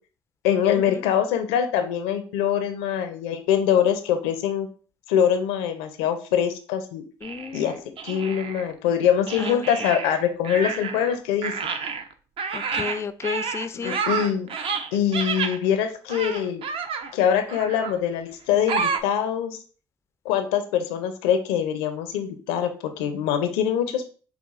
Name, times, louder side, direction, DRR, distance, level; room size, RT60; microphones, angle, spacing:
voice 1, 0.4-4.7 5.1-7.0 7.5-7.8 8.0-11.5 13.7-14.5 14.9-16.6 17.1-19.6 20.2-24.1, left 9 dB, 80° left, 8 dB, 0.5 m, -23 dB
voice 2, 7.2-7.7 9.4-9.6 12.5-14.0, left 5 dB, 20° left, 12 dB, 0.3 m, -32 dB
sound 1, 7.2-8.7 9.3-11.2 11.4-15.6 16.1-17.1 17.5-18.0 18.7-19.0, right 5 dB, 50° right, 0.5 m, -30 dB
5.6 x 2.3 x 2.5 m, 0.40 s
hypercardioid pair, 60°, 12 cm